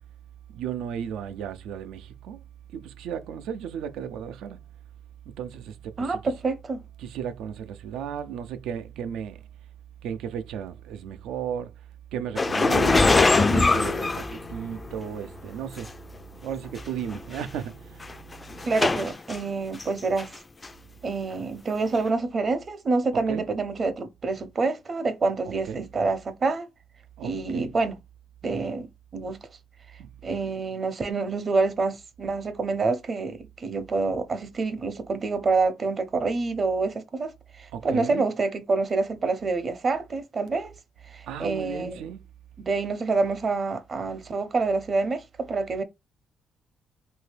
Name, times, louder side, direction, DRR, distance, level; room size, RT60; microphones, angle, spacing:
voice 1, 0.5-2.4 2.7-4.6 5.3-6.2 7.0-9.4 10.0-11.7 12.1-15.9 16.4-18.0 23.3-23.4 25.6-25.9 27.2-27.7 30.0-30.1 37.7-38.2 41.3-42.2, right 8 dB, 85° right, 0.5 m, -34 dB
voice 2, 6.0-6.8 18.6-20.3 21.0-26.7 27.2-27.9 28.4-28.9 29.1-29.4 30.2-40.7 41.1-42.0 42.6-45.8, right 3 dB, 40° right, 0.7 m, -27 dB
sound 1, 12.4-14.9 15.8-15.9 16.8-16.9 17.1-17.4 18.0-19.4 19.8-20.4 20.6-20.7 21.9-22.0, left 3 dB, 25° left, 0.3 m, -22 dB
2.8 x 2.7 x 3.3 m
cardioid pair, 90°, 0 cm